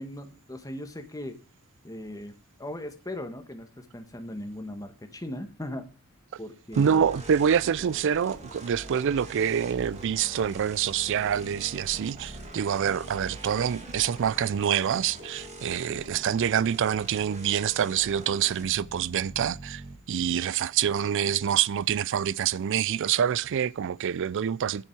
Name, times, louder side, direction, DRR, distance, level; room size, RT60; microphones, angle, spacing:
voice 1, 0.0-1.3 1.8-2.3 2.6-5.8 6.4-7.0, left 1 dB, 15° left, 1.3 m, -38 dB
sound 1, 6.7-20.0, right 1 dB, 30° right, 1.9 m, -43 dB
voice 2, 6.8-19.8 20.1-24.8, right 8 dB, 55° right, 0.4 m, -26 dB
10.0 x 7.1 x 4.5 m
head